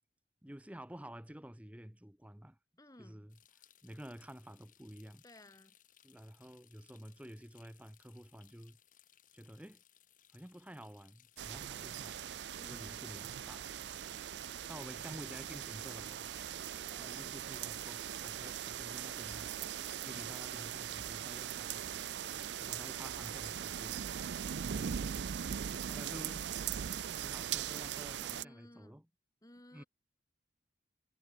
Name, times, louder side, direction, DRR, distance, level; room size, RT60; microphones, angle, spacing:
voice 1, 0.4-2.6 3.0-3.4 3.8-5.2 6.0-8.8 9.3-9.8 10.3-12.2 12.6-13.7 14.7-16.3 17.0-24.1 24.7-25.3 25.9-26.5 27.2-29.1 29.7-29.8, equal, 10° right, 1.0 m, -51 dB
voice 2, 2.8-3.3 5.2-5.7 12.6-13.2 16.9-17.4 28.2-29.0 29.4-29.9, left 1 dB, 20° left, 3.4 m, -57 dB
sound 1, 3.3-23.0, left 11 dB, 45° left, 6.0 m, -66 dB
sound 2, 11.4-28.4, right 9 dB, 75° right, 0.4 m, -40 dB
head